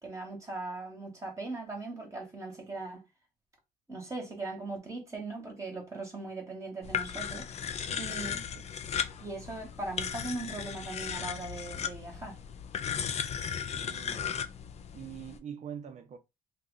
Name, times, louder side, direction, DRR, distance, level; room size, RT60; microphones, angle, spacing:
voice 1, 0.0-3.0 3.9-7.5 8.0-8.3 9.2-12.4, right 2 dB, 20° right, 1.1 m, -39 dB
sound 1, 6.8-15.4, left 8 dB, 40° left, 0.4 m, -36 dB
voice 2, 7.9-8.7 13.7-14.4 14.9-16.2, right 8 dB, 45° right, 0.5 m, -45 dB
2.9 x 2.4 x 3.8 m
cardioid pair, 110°, 17 cm